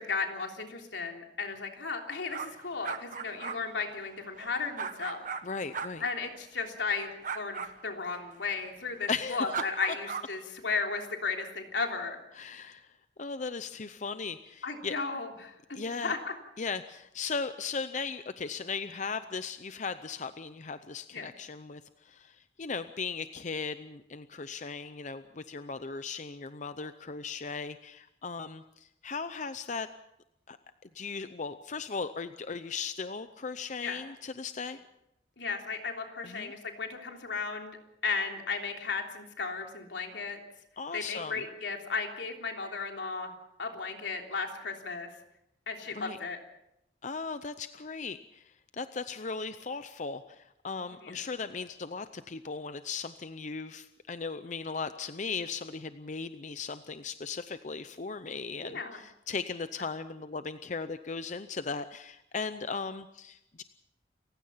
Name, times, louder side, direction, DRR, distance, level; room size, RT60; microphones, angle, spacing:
voice 1, 0.0-5.2 6.0-7.1 7.3-12.2 14.6-16.3 21.1-21.3 33.8-34.0 35.4-37.8 38.0-40.4 40.9-43.3 43.6-45.1 45.7-46.4 51.0-51.2 58.6-59.0, left 4 dB, 85° left, 2 dB, 3.4 m, -35 dB
sound 1, 2.3-5.4 5.7-5.9 7.2-7.7 9.5-10.2, right 6 dB, 50° right, 1.4 m, -37 dB
voice 2, 5.4-6.0 9.1-9.7 12.3-12.9 13.2-14.9 15.7-16.1 16.6-29.9 30.5-30.6 30.9-34.8 36.2-36.5 40.8-41.4 45.9-46.2 47.0-63.6, left 4 dB, 45° left, 11 dB, 0.7 m, -37 dB
29.0 x 16.0 x 5.7 m, 0.82 s
head